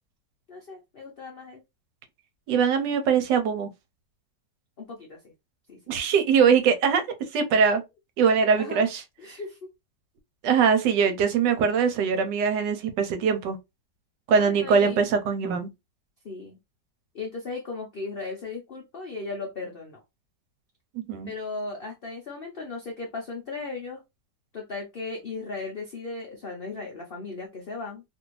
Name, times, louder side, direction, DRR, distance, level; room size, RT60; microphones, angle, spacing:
voice 1, 0.5-1.6 4.8-5.2 5.7-5.8 8.5-8.8 9.2-9.7 14.3-15.1 16.2-16.6 17.1-20.0 21.3-24.0 24.5-28.0, left 3 dB, 75° left, 0.5 m, -36 dB
voice 2, 2.5-3.7 5.9-7.0 7.3-7.8 8.2-9.0 10.4-13.6 14.3-15.7 20.9-21.3, right 6 dB, 80° right, 1.3 m, -22 dB
2.8 x 2.6 x 3.0 m
omnidirectional pair, 1.9 m